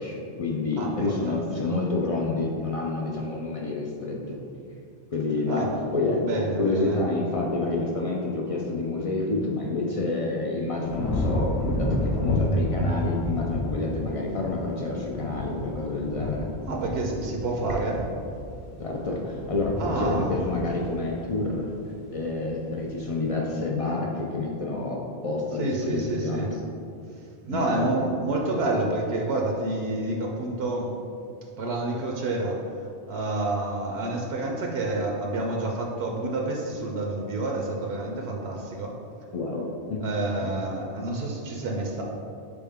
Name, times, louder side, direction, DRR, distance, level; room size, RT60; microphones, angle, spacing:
voice 1, 0.0-4.4 5.1-5.7 5.9-6.2 6.6-16.5 18.8-21.7 22.1-26.5 27.5-27.9 39.3-40.1 40.4-40.5, left 3 dB, 55° left, -1 dB, 0.3 m, -28 dB
voice 2, 0.8-1.8 5.5-5.8 6.2-7.0 16.7-18.1 19.7-20.3 25.6-26.5 27.5-30.9 31.6-32.6 33.1-38.9 40.0-42.0, right 2 dB, 75° right, 0 dB, 0.8 m, -29 dB
sound 1, 10.8-22.1 22.6-23.0, left 1 dB, 80° left, 0.9 m, -31 dB
4.4 x 3.5 x 3.5 m, 2.5 s
omnidirectional pair, 1.1 m